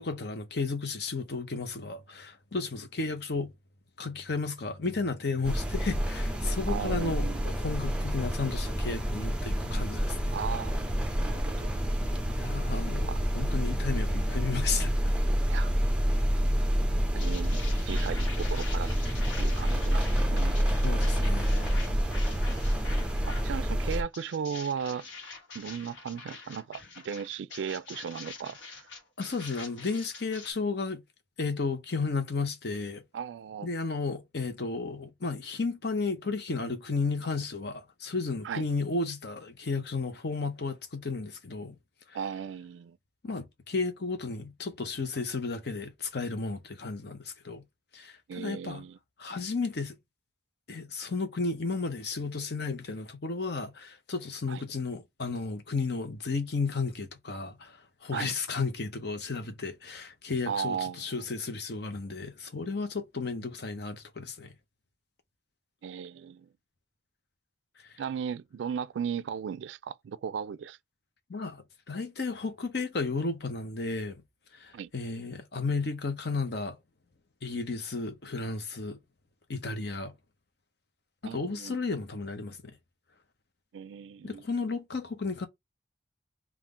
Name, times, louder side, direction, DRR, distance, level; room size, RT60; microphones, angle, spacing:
voice 1, 0.0-3.5 4.0-10.3 12.4-14.9 20.8-21.9 29.2-31.0 31.4-33.0 33.6-41.7 42.1-42.2 43.2-47.6 47.9-48.8 49.2-50.0 50.7-57.8 58.0-64.5 71.3-74.2 74.5-76.8 77.4-79.0 79.5-80.1 81.2-82.7 84.2-85.5, left 4 dB, 60° left, 0.7 m, -33 dB
sound 1, 5.4-24.0, equal, 5° right, 0.5 m, -28 dB
voice 2, 6.7-7.5 10.3-11.7 13.1-13.2 15.5-15.7 17.1-18.9 19.4-20.6 23.3-25.1 25.5-28.9 33.1-33.7 38.4-38.6 42.1-43.0 48.3-49.0 54.5-54.6 58.1-58.3 60.5-61.1 65.8-66.5 68.0-70.8 74.7-74.9 81.2-81.8 83.7-84.4, right 7 dB, 75° right, 0.3 m, -36 dB
sound 2, 17.2-23.5 23.9-30.5, left 4 dB, 85° left, 1.2 m, -45 dB
3.6 x 2.4 x 3.6 m
head